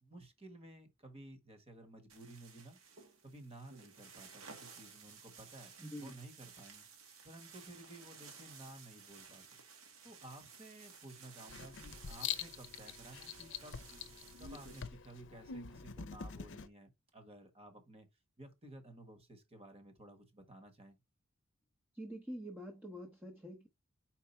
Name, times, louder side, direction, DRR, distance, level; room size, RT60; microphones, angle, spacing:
voice 1, 0.0-2.8 3.2-6.8 7.2-9.6 10.0-13.8 14.4-18.1 18.4-20.9, right 1 dB, 30° right, 1.4 m, -54 dB
sound 1, 2.1-14.8, right 5 dB, 70° right, 1.5 m, -56 dB
voice 2, 5.8-6.2 21.9-23.7, equal, 10° right, 0.9 m, -46 dB
Writing, 11.5-16.7, left 7 dB, 60° left, 0.7 m, -45 dB
4.8 x 4.7 x 4.4 m
head